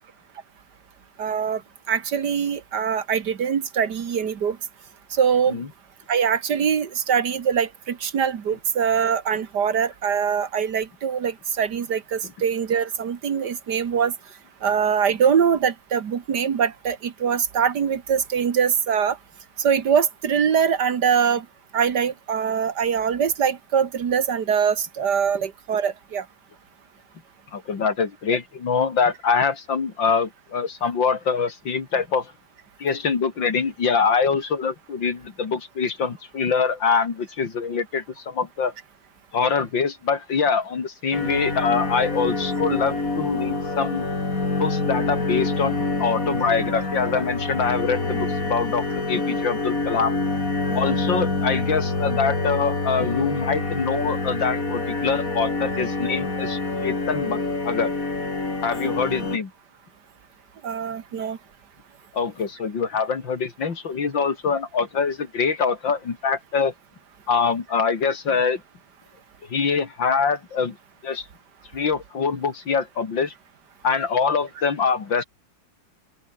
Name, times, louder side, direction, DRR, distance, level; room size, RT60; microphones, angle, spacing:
voice 1, 1.2-1.6 1.9-4.6 5.1-5.6 6.1-14.2 14.6-19.2 19.6-21.5 21.7-26.3 50.7-50.8 60.6-61.4, right 7 dB, 65° right, 2.0 m, -23 dB
voice 2, 27.5-32.3 32.8-38.7 39.3-44.1 44.6-50.2 50.7-57.9 58.6-59.5 62.1-66.7 67.3-68.6 69.5-70.8 71.0-71.3 71.7-73.3 73.8-75.2, left 5 dB, 85° left, 3.4 m, -24 dB
sound 1, 41.1-59.4, left 3 dB, 45° left, 4.6 m, -26 dB
open air
omnidirectional pair, 2.0 m